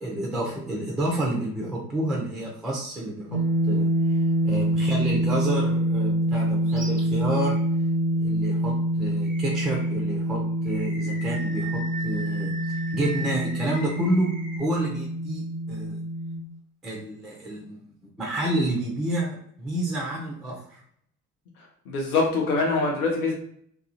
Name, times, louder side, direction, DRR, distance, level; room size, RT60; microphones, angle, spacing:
voice 1, 0.0-4.2 4.4-7.6 8.2-12.6 12.9-14.3 14.6-16.0 16.8-20.8, right 1 dB, ahead, -2 dB, 0.4 m, -29 dB
sound 1, 3.3-16.4, right 1 dB, 45° left, 1.3 m, -26 dB
Animal, 6.7-7.0 7.5-7.6 9.2-10.0 10.6-14.6, right 2 dB, 20° right, 0.8 m, -39 dB
voice 2, 21.6-23.3, left 3 dB, 70° left, -1 dB, 0.7 m, -24 dB
2.3 x 2.2 x 2.7 m, 0.66 s
figure-of-eight pair, 60°, 45 cm